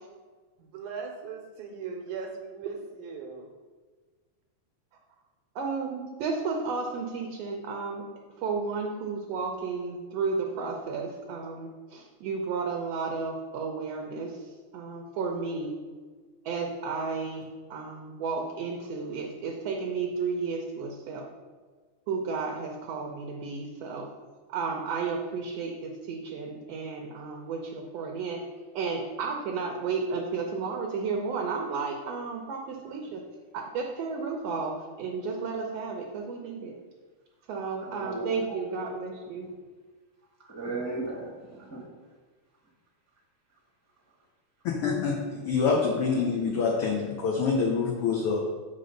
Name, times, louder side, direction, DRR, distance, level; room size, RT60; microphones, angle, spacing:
voice 1, 0.6-3.5, right 5 dB, 90° right, -1 dB, 2.2 m, -39 dB
voice 2, 5.5-8.0 8.4-15.8 16.4-21.2 22.1-24.1 24.5-28.4 28.7-33.2 33.5-36.8 37.5-39.5, right 4 dB, 70° right, 2 dB, 1.6 m, -33 dB
voice 3, 37.8-38.7 40.4-41.9, right 2 dB, 10° right, -3 dB, 0.9 m, -36 dB
voice 4, 44.6-48.4, left 5 dB, 70° left, 0 dB, 1.4 m, -26 dB
7.8 x 3.6 x 6.4 m, 1.4 s
omnidirectional pair, 3.4 m